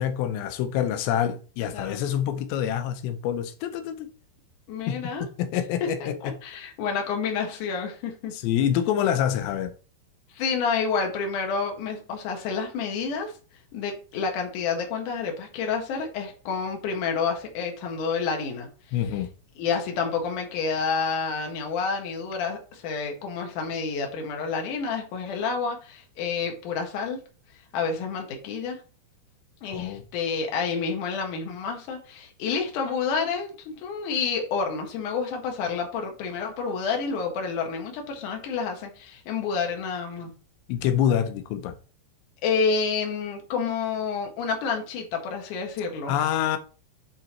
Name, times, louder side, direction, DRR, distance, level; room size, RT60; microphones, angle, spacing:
voice 1, 0.0-4.1 4.9-5.0 5.4-6.3 8.3-9.7 18.9-19.3 29.7-30.0 40.7-41.7 46.1-46.6, left 10 dB, 90° left, 3.0 m, -26 dB
voice 2, 4.7-5.3 5.8-5.9 6.2-8.4 10.3-13.3 13.7-18.7 19.6-27.2 27.7-28.8 29.6-40.3 42.4-46.1, left 5 dB, 55° left, 2.8 m, -29 dB
8.7 x 3.9 x 4.4 m
omnidirectional pair, 4.9 m